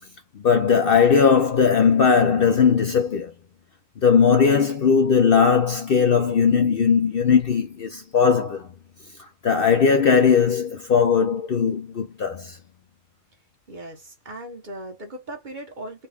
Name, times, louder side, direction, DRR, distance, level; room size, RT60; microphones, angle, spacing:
voice 1, 0.4-3.3 4.0-8.7 9.4-12.6, left 6 dB, 55° left, 0.7 m, -18 dB
voice 2, 13.7-16.1, right 1 dB, 40° right, 1.0 m, -38 dB
4.1 x 2.2 x 3.4 m
omnidirectional pair, 1.3 m